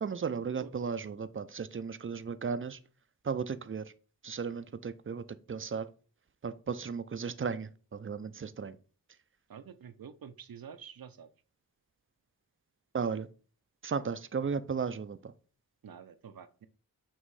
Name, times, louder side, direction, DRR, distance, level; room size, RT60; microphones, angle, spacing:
voice 1, 0.0-2.8 3.2-3.9 4.2-5.9 6.4-8.8 12.9-13.3 13.8-15.3, right 6 dB, 35° right, 0.5 m, -35 dB
voice 2, 9.5-11.3 15.8-16.7, right 7 dB, 70° right, 0.7 m, -48 dB
7.5 x 3.1 x 4.8 m
wide cardioid pair, 65°, 36 cm